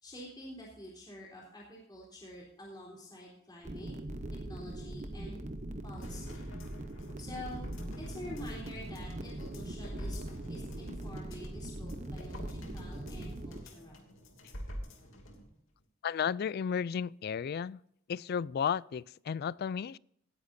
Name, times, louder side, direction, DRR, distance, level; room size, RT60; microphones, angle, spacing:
voice 1, 0.0-4.0 4.3-5.4 5.8-6.5 7.2-7.6 8.0-10.2 10.5-14.0, left 1 dB, 20° left, 3.7 m, -47 dB
sound 1, 3.6-13.6, right 1 dB, 35° right, 1.0 m, -41 dB
sound 2, 6.0-15.4 15.8-15.9, equal, 85° left, 2.7 m, -47 dB
voice 2, 16.0-17.8 18.1-20.0, left 7 dB, 50° left, 0.3 m, -33 dB
18.5 x 10.0 x 2.7 m
head